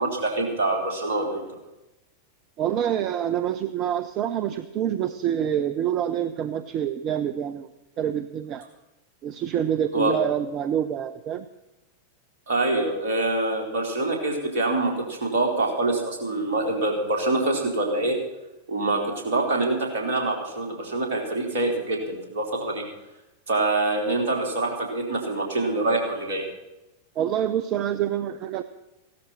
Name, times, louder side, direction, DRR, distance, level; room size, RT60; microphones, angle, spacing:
voice 1, 0.0-1.6 9.9-10.1 12.5-18.2 18.7-22.8 23.5-26.4, right 2 dB, 55° right, 1 dB, 3.9 m, -25 dB
voice 2, 2.6-7.7 8.0-8.6 9.2-11.4 27.2-28.6, right 10 dB, 35° right, 12 dB, 0.7 m, -26 dB
16.0 x 13.0 x 5.8 m, 0.98 s
figure-of-eight pair, 90°, 0 cm